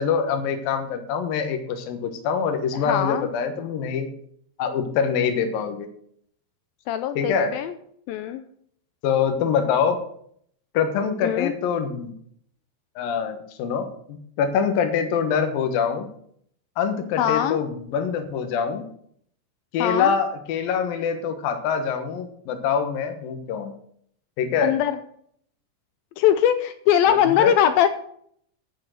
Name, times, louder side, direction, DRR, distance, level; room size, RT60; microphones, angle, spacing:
voice 1, 0.0-4.1 4.6-5.9 7.2-7.6 9.0-10.0 10.7-12.1 13.0-16.1 16.8-18.8 19.7-23.7 24.4-24.8 27.2-27.5, left 6 dB, 65° left, 6 dB, 2.8 m, -24 dB
voice 2, 2.7-3.3 6.9-7.7 8.1-8.4 11.2-11.5 17.2-17.6 19.8-20.2 24.6-25.0 26.2-27.9, left 10 dB, 80° left, 11 dB, 2.1 m, -21 dB
8.7 x 8.6 x 6.5 m, 0.64 s
omnidirectional pair, 4.8 m